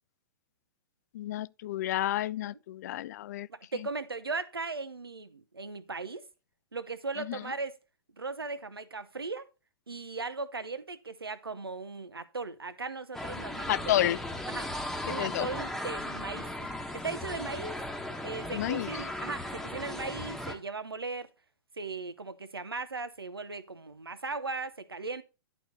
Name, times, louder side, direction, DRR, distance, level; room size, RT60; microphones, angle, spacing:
voice 1, 1.1-3.5 7.3-7.4 13.7-14.2 15.1-15.5 18.5-18.9, left 13 dB, 45° left, 0.3 m, -30 dB
voice 2, 3.5-6.2 6.7-7.8 8.2-9.5 9.9-13.8 14.5-14.7 15.1-17.8 18.2-21.3 21.8-25.2, right 3 dB, 85° right, 0.8 m, -38 dB
sound 1, 13.1-20.6, left 1 dB, ahead, 1.2 m, -37 dB
11.0 x 4.2 x 4.3 m
figure-of-eight pair, 110°, 12 cm